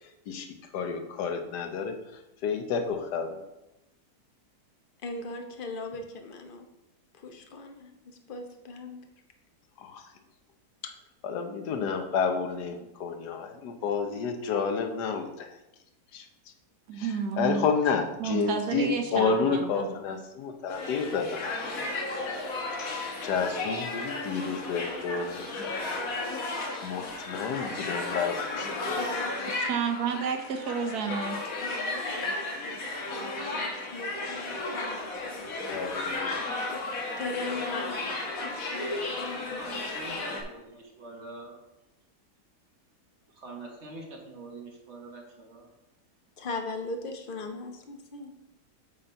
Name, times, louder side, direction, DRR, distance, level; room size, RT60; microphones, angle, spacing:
voice 1, 0.7-3.4 9.8-10.1 10.8-10.9 11.2-15.6 16.1-16.3 16.9-21.4 23.2-25.7 26.8-29.0 35.7-36.4, left 5 dB, 85° left, 5 dB, 1.4 m, -30 dB
voice 2, 5.0-6.7 7.2-8.0 8.3-9.0 29.0-29.7 31.6-35.5 36.7-36.8 37.2-38.1 38.4-38.9 39.2-39.6 46.4-48.3, left 3 dB, 45° left, 4 dB, 0.8 m, -39 dB
voice 3, 16.9-17.7 18.2-19.9 29.5-31.4, right 6 dB, 70° right, 5 dB, 1.3 m, -31 dB
sound 1, 20.7-40.4, left 2 dB, 60° left, 1.4 m, -34 dB
voice 4, 39.4-41.6 43.3-45.7, right 3 dB, 45° right, 0 dB, 1.4 m, -45 dB
7.9 x 4.0 x 4.4 m, 0.91 s
omnidirectional pair, 1.7 m